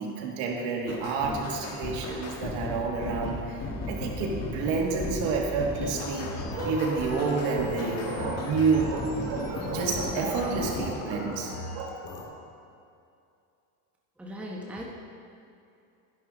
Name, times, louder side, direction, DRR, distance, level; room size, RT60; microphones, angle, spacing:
voice 1, 0.0-12.0, right 4 dB, 65° right, 0 dB, 2.1 m, -29 dB
sound 1, 0.9-11.0, left 2 dB, 30° left, 1.6 m, -36 dB
sound 2, 5.7-12.2, left 3 dB, 70° left, 2.3 m, -40 dB
voice 2, 14.2-14.9, equal, 5° right, -3 dB, 1.0 m, -38 dB
11.5 x 10.5 x 3.8 m, 2.6 s
cardioid pair, 140°, 50 cm